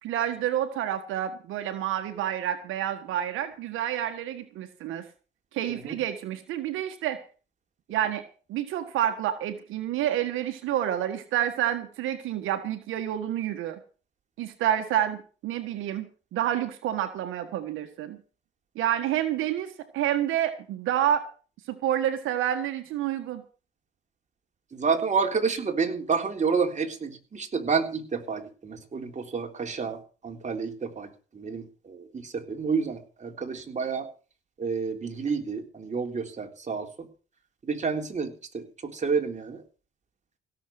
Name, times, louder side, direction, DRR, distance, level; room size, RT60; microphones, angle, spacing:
voice 1, 0.0-5.0 5.5-7.2 7.9-8.2 8.5-13.8 14.4-18.2 18.7-21.2 21.7-23.4, right 11 dB, 90° right, 8 dB, 1.6 m, -29 dB
voice 2, 5.7-6.0 24.7-34.1 34.6-37.1 37.6-39.6, right 5 dB, 35° right, 4 dB, 3.5 m, -29 dB
17.0 x 7.4 x 7.7 m, 0.37 s
cardioid pair, 90°, 20 cm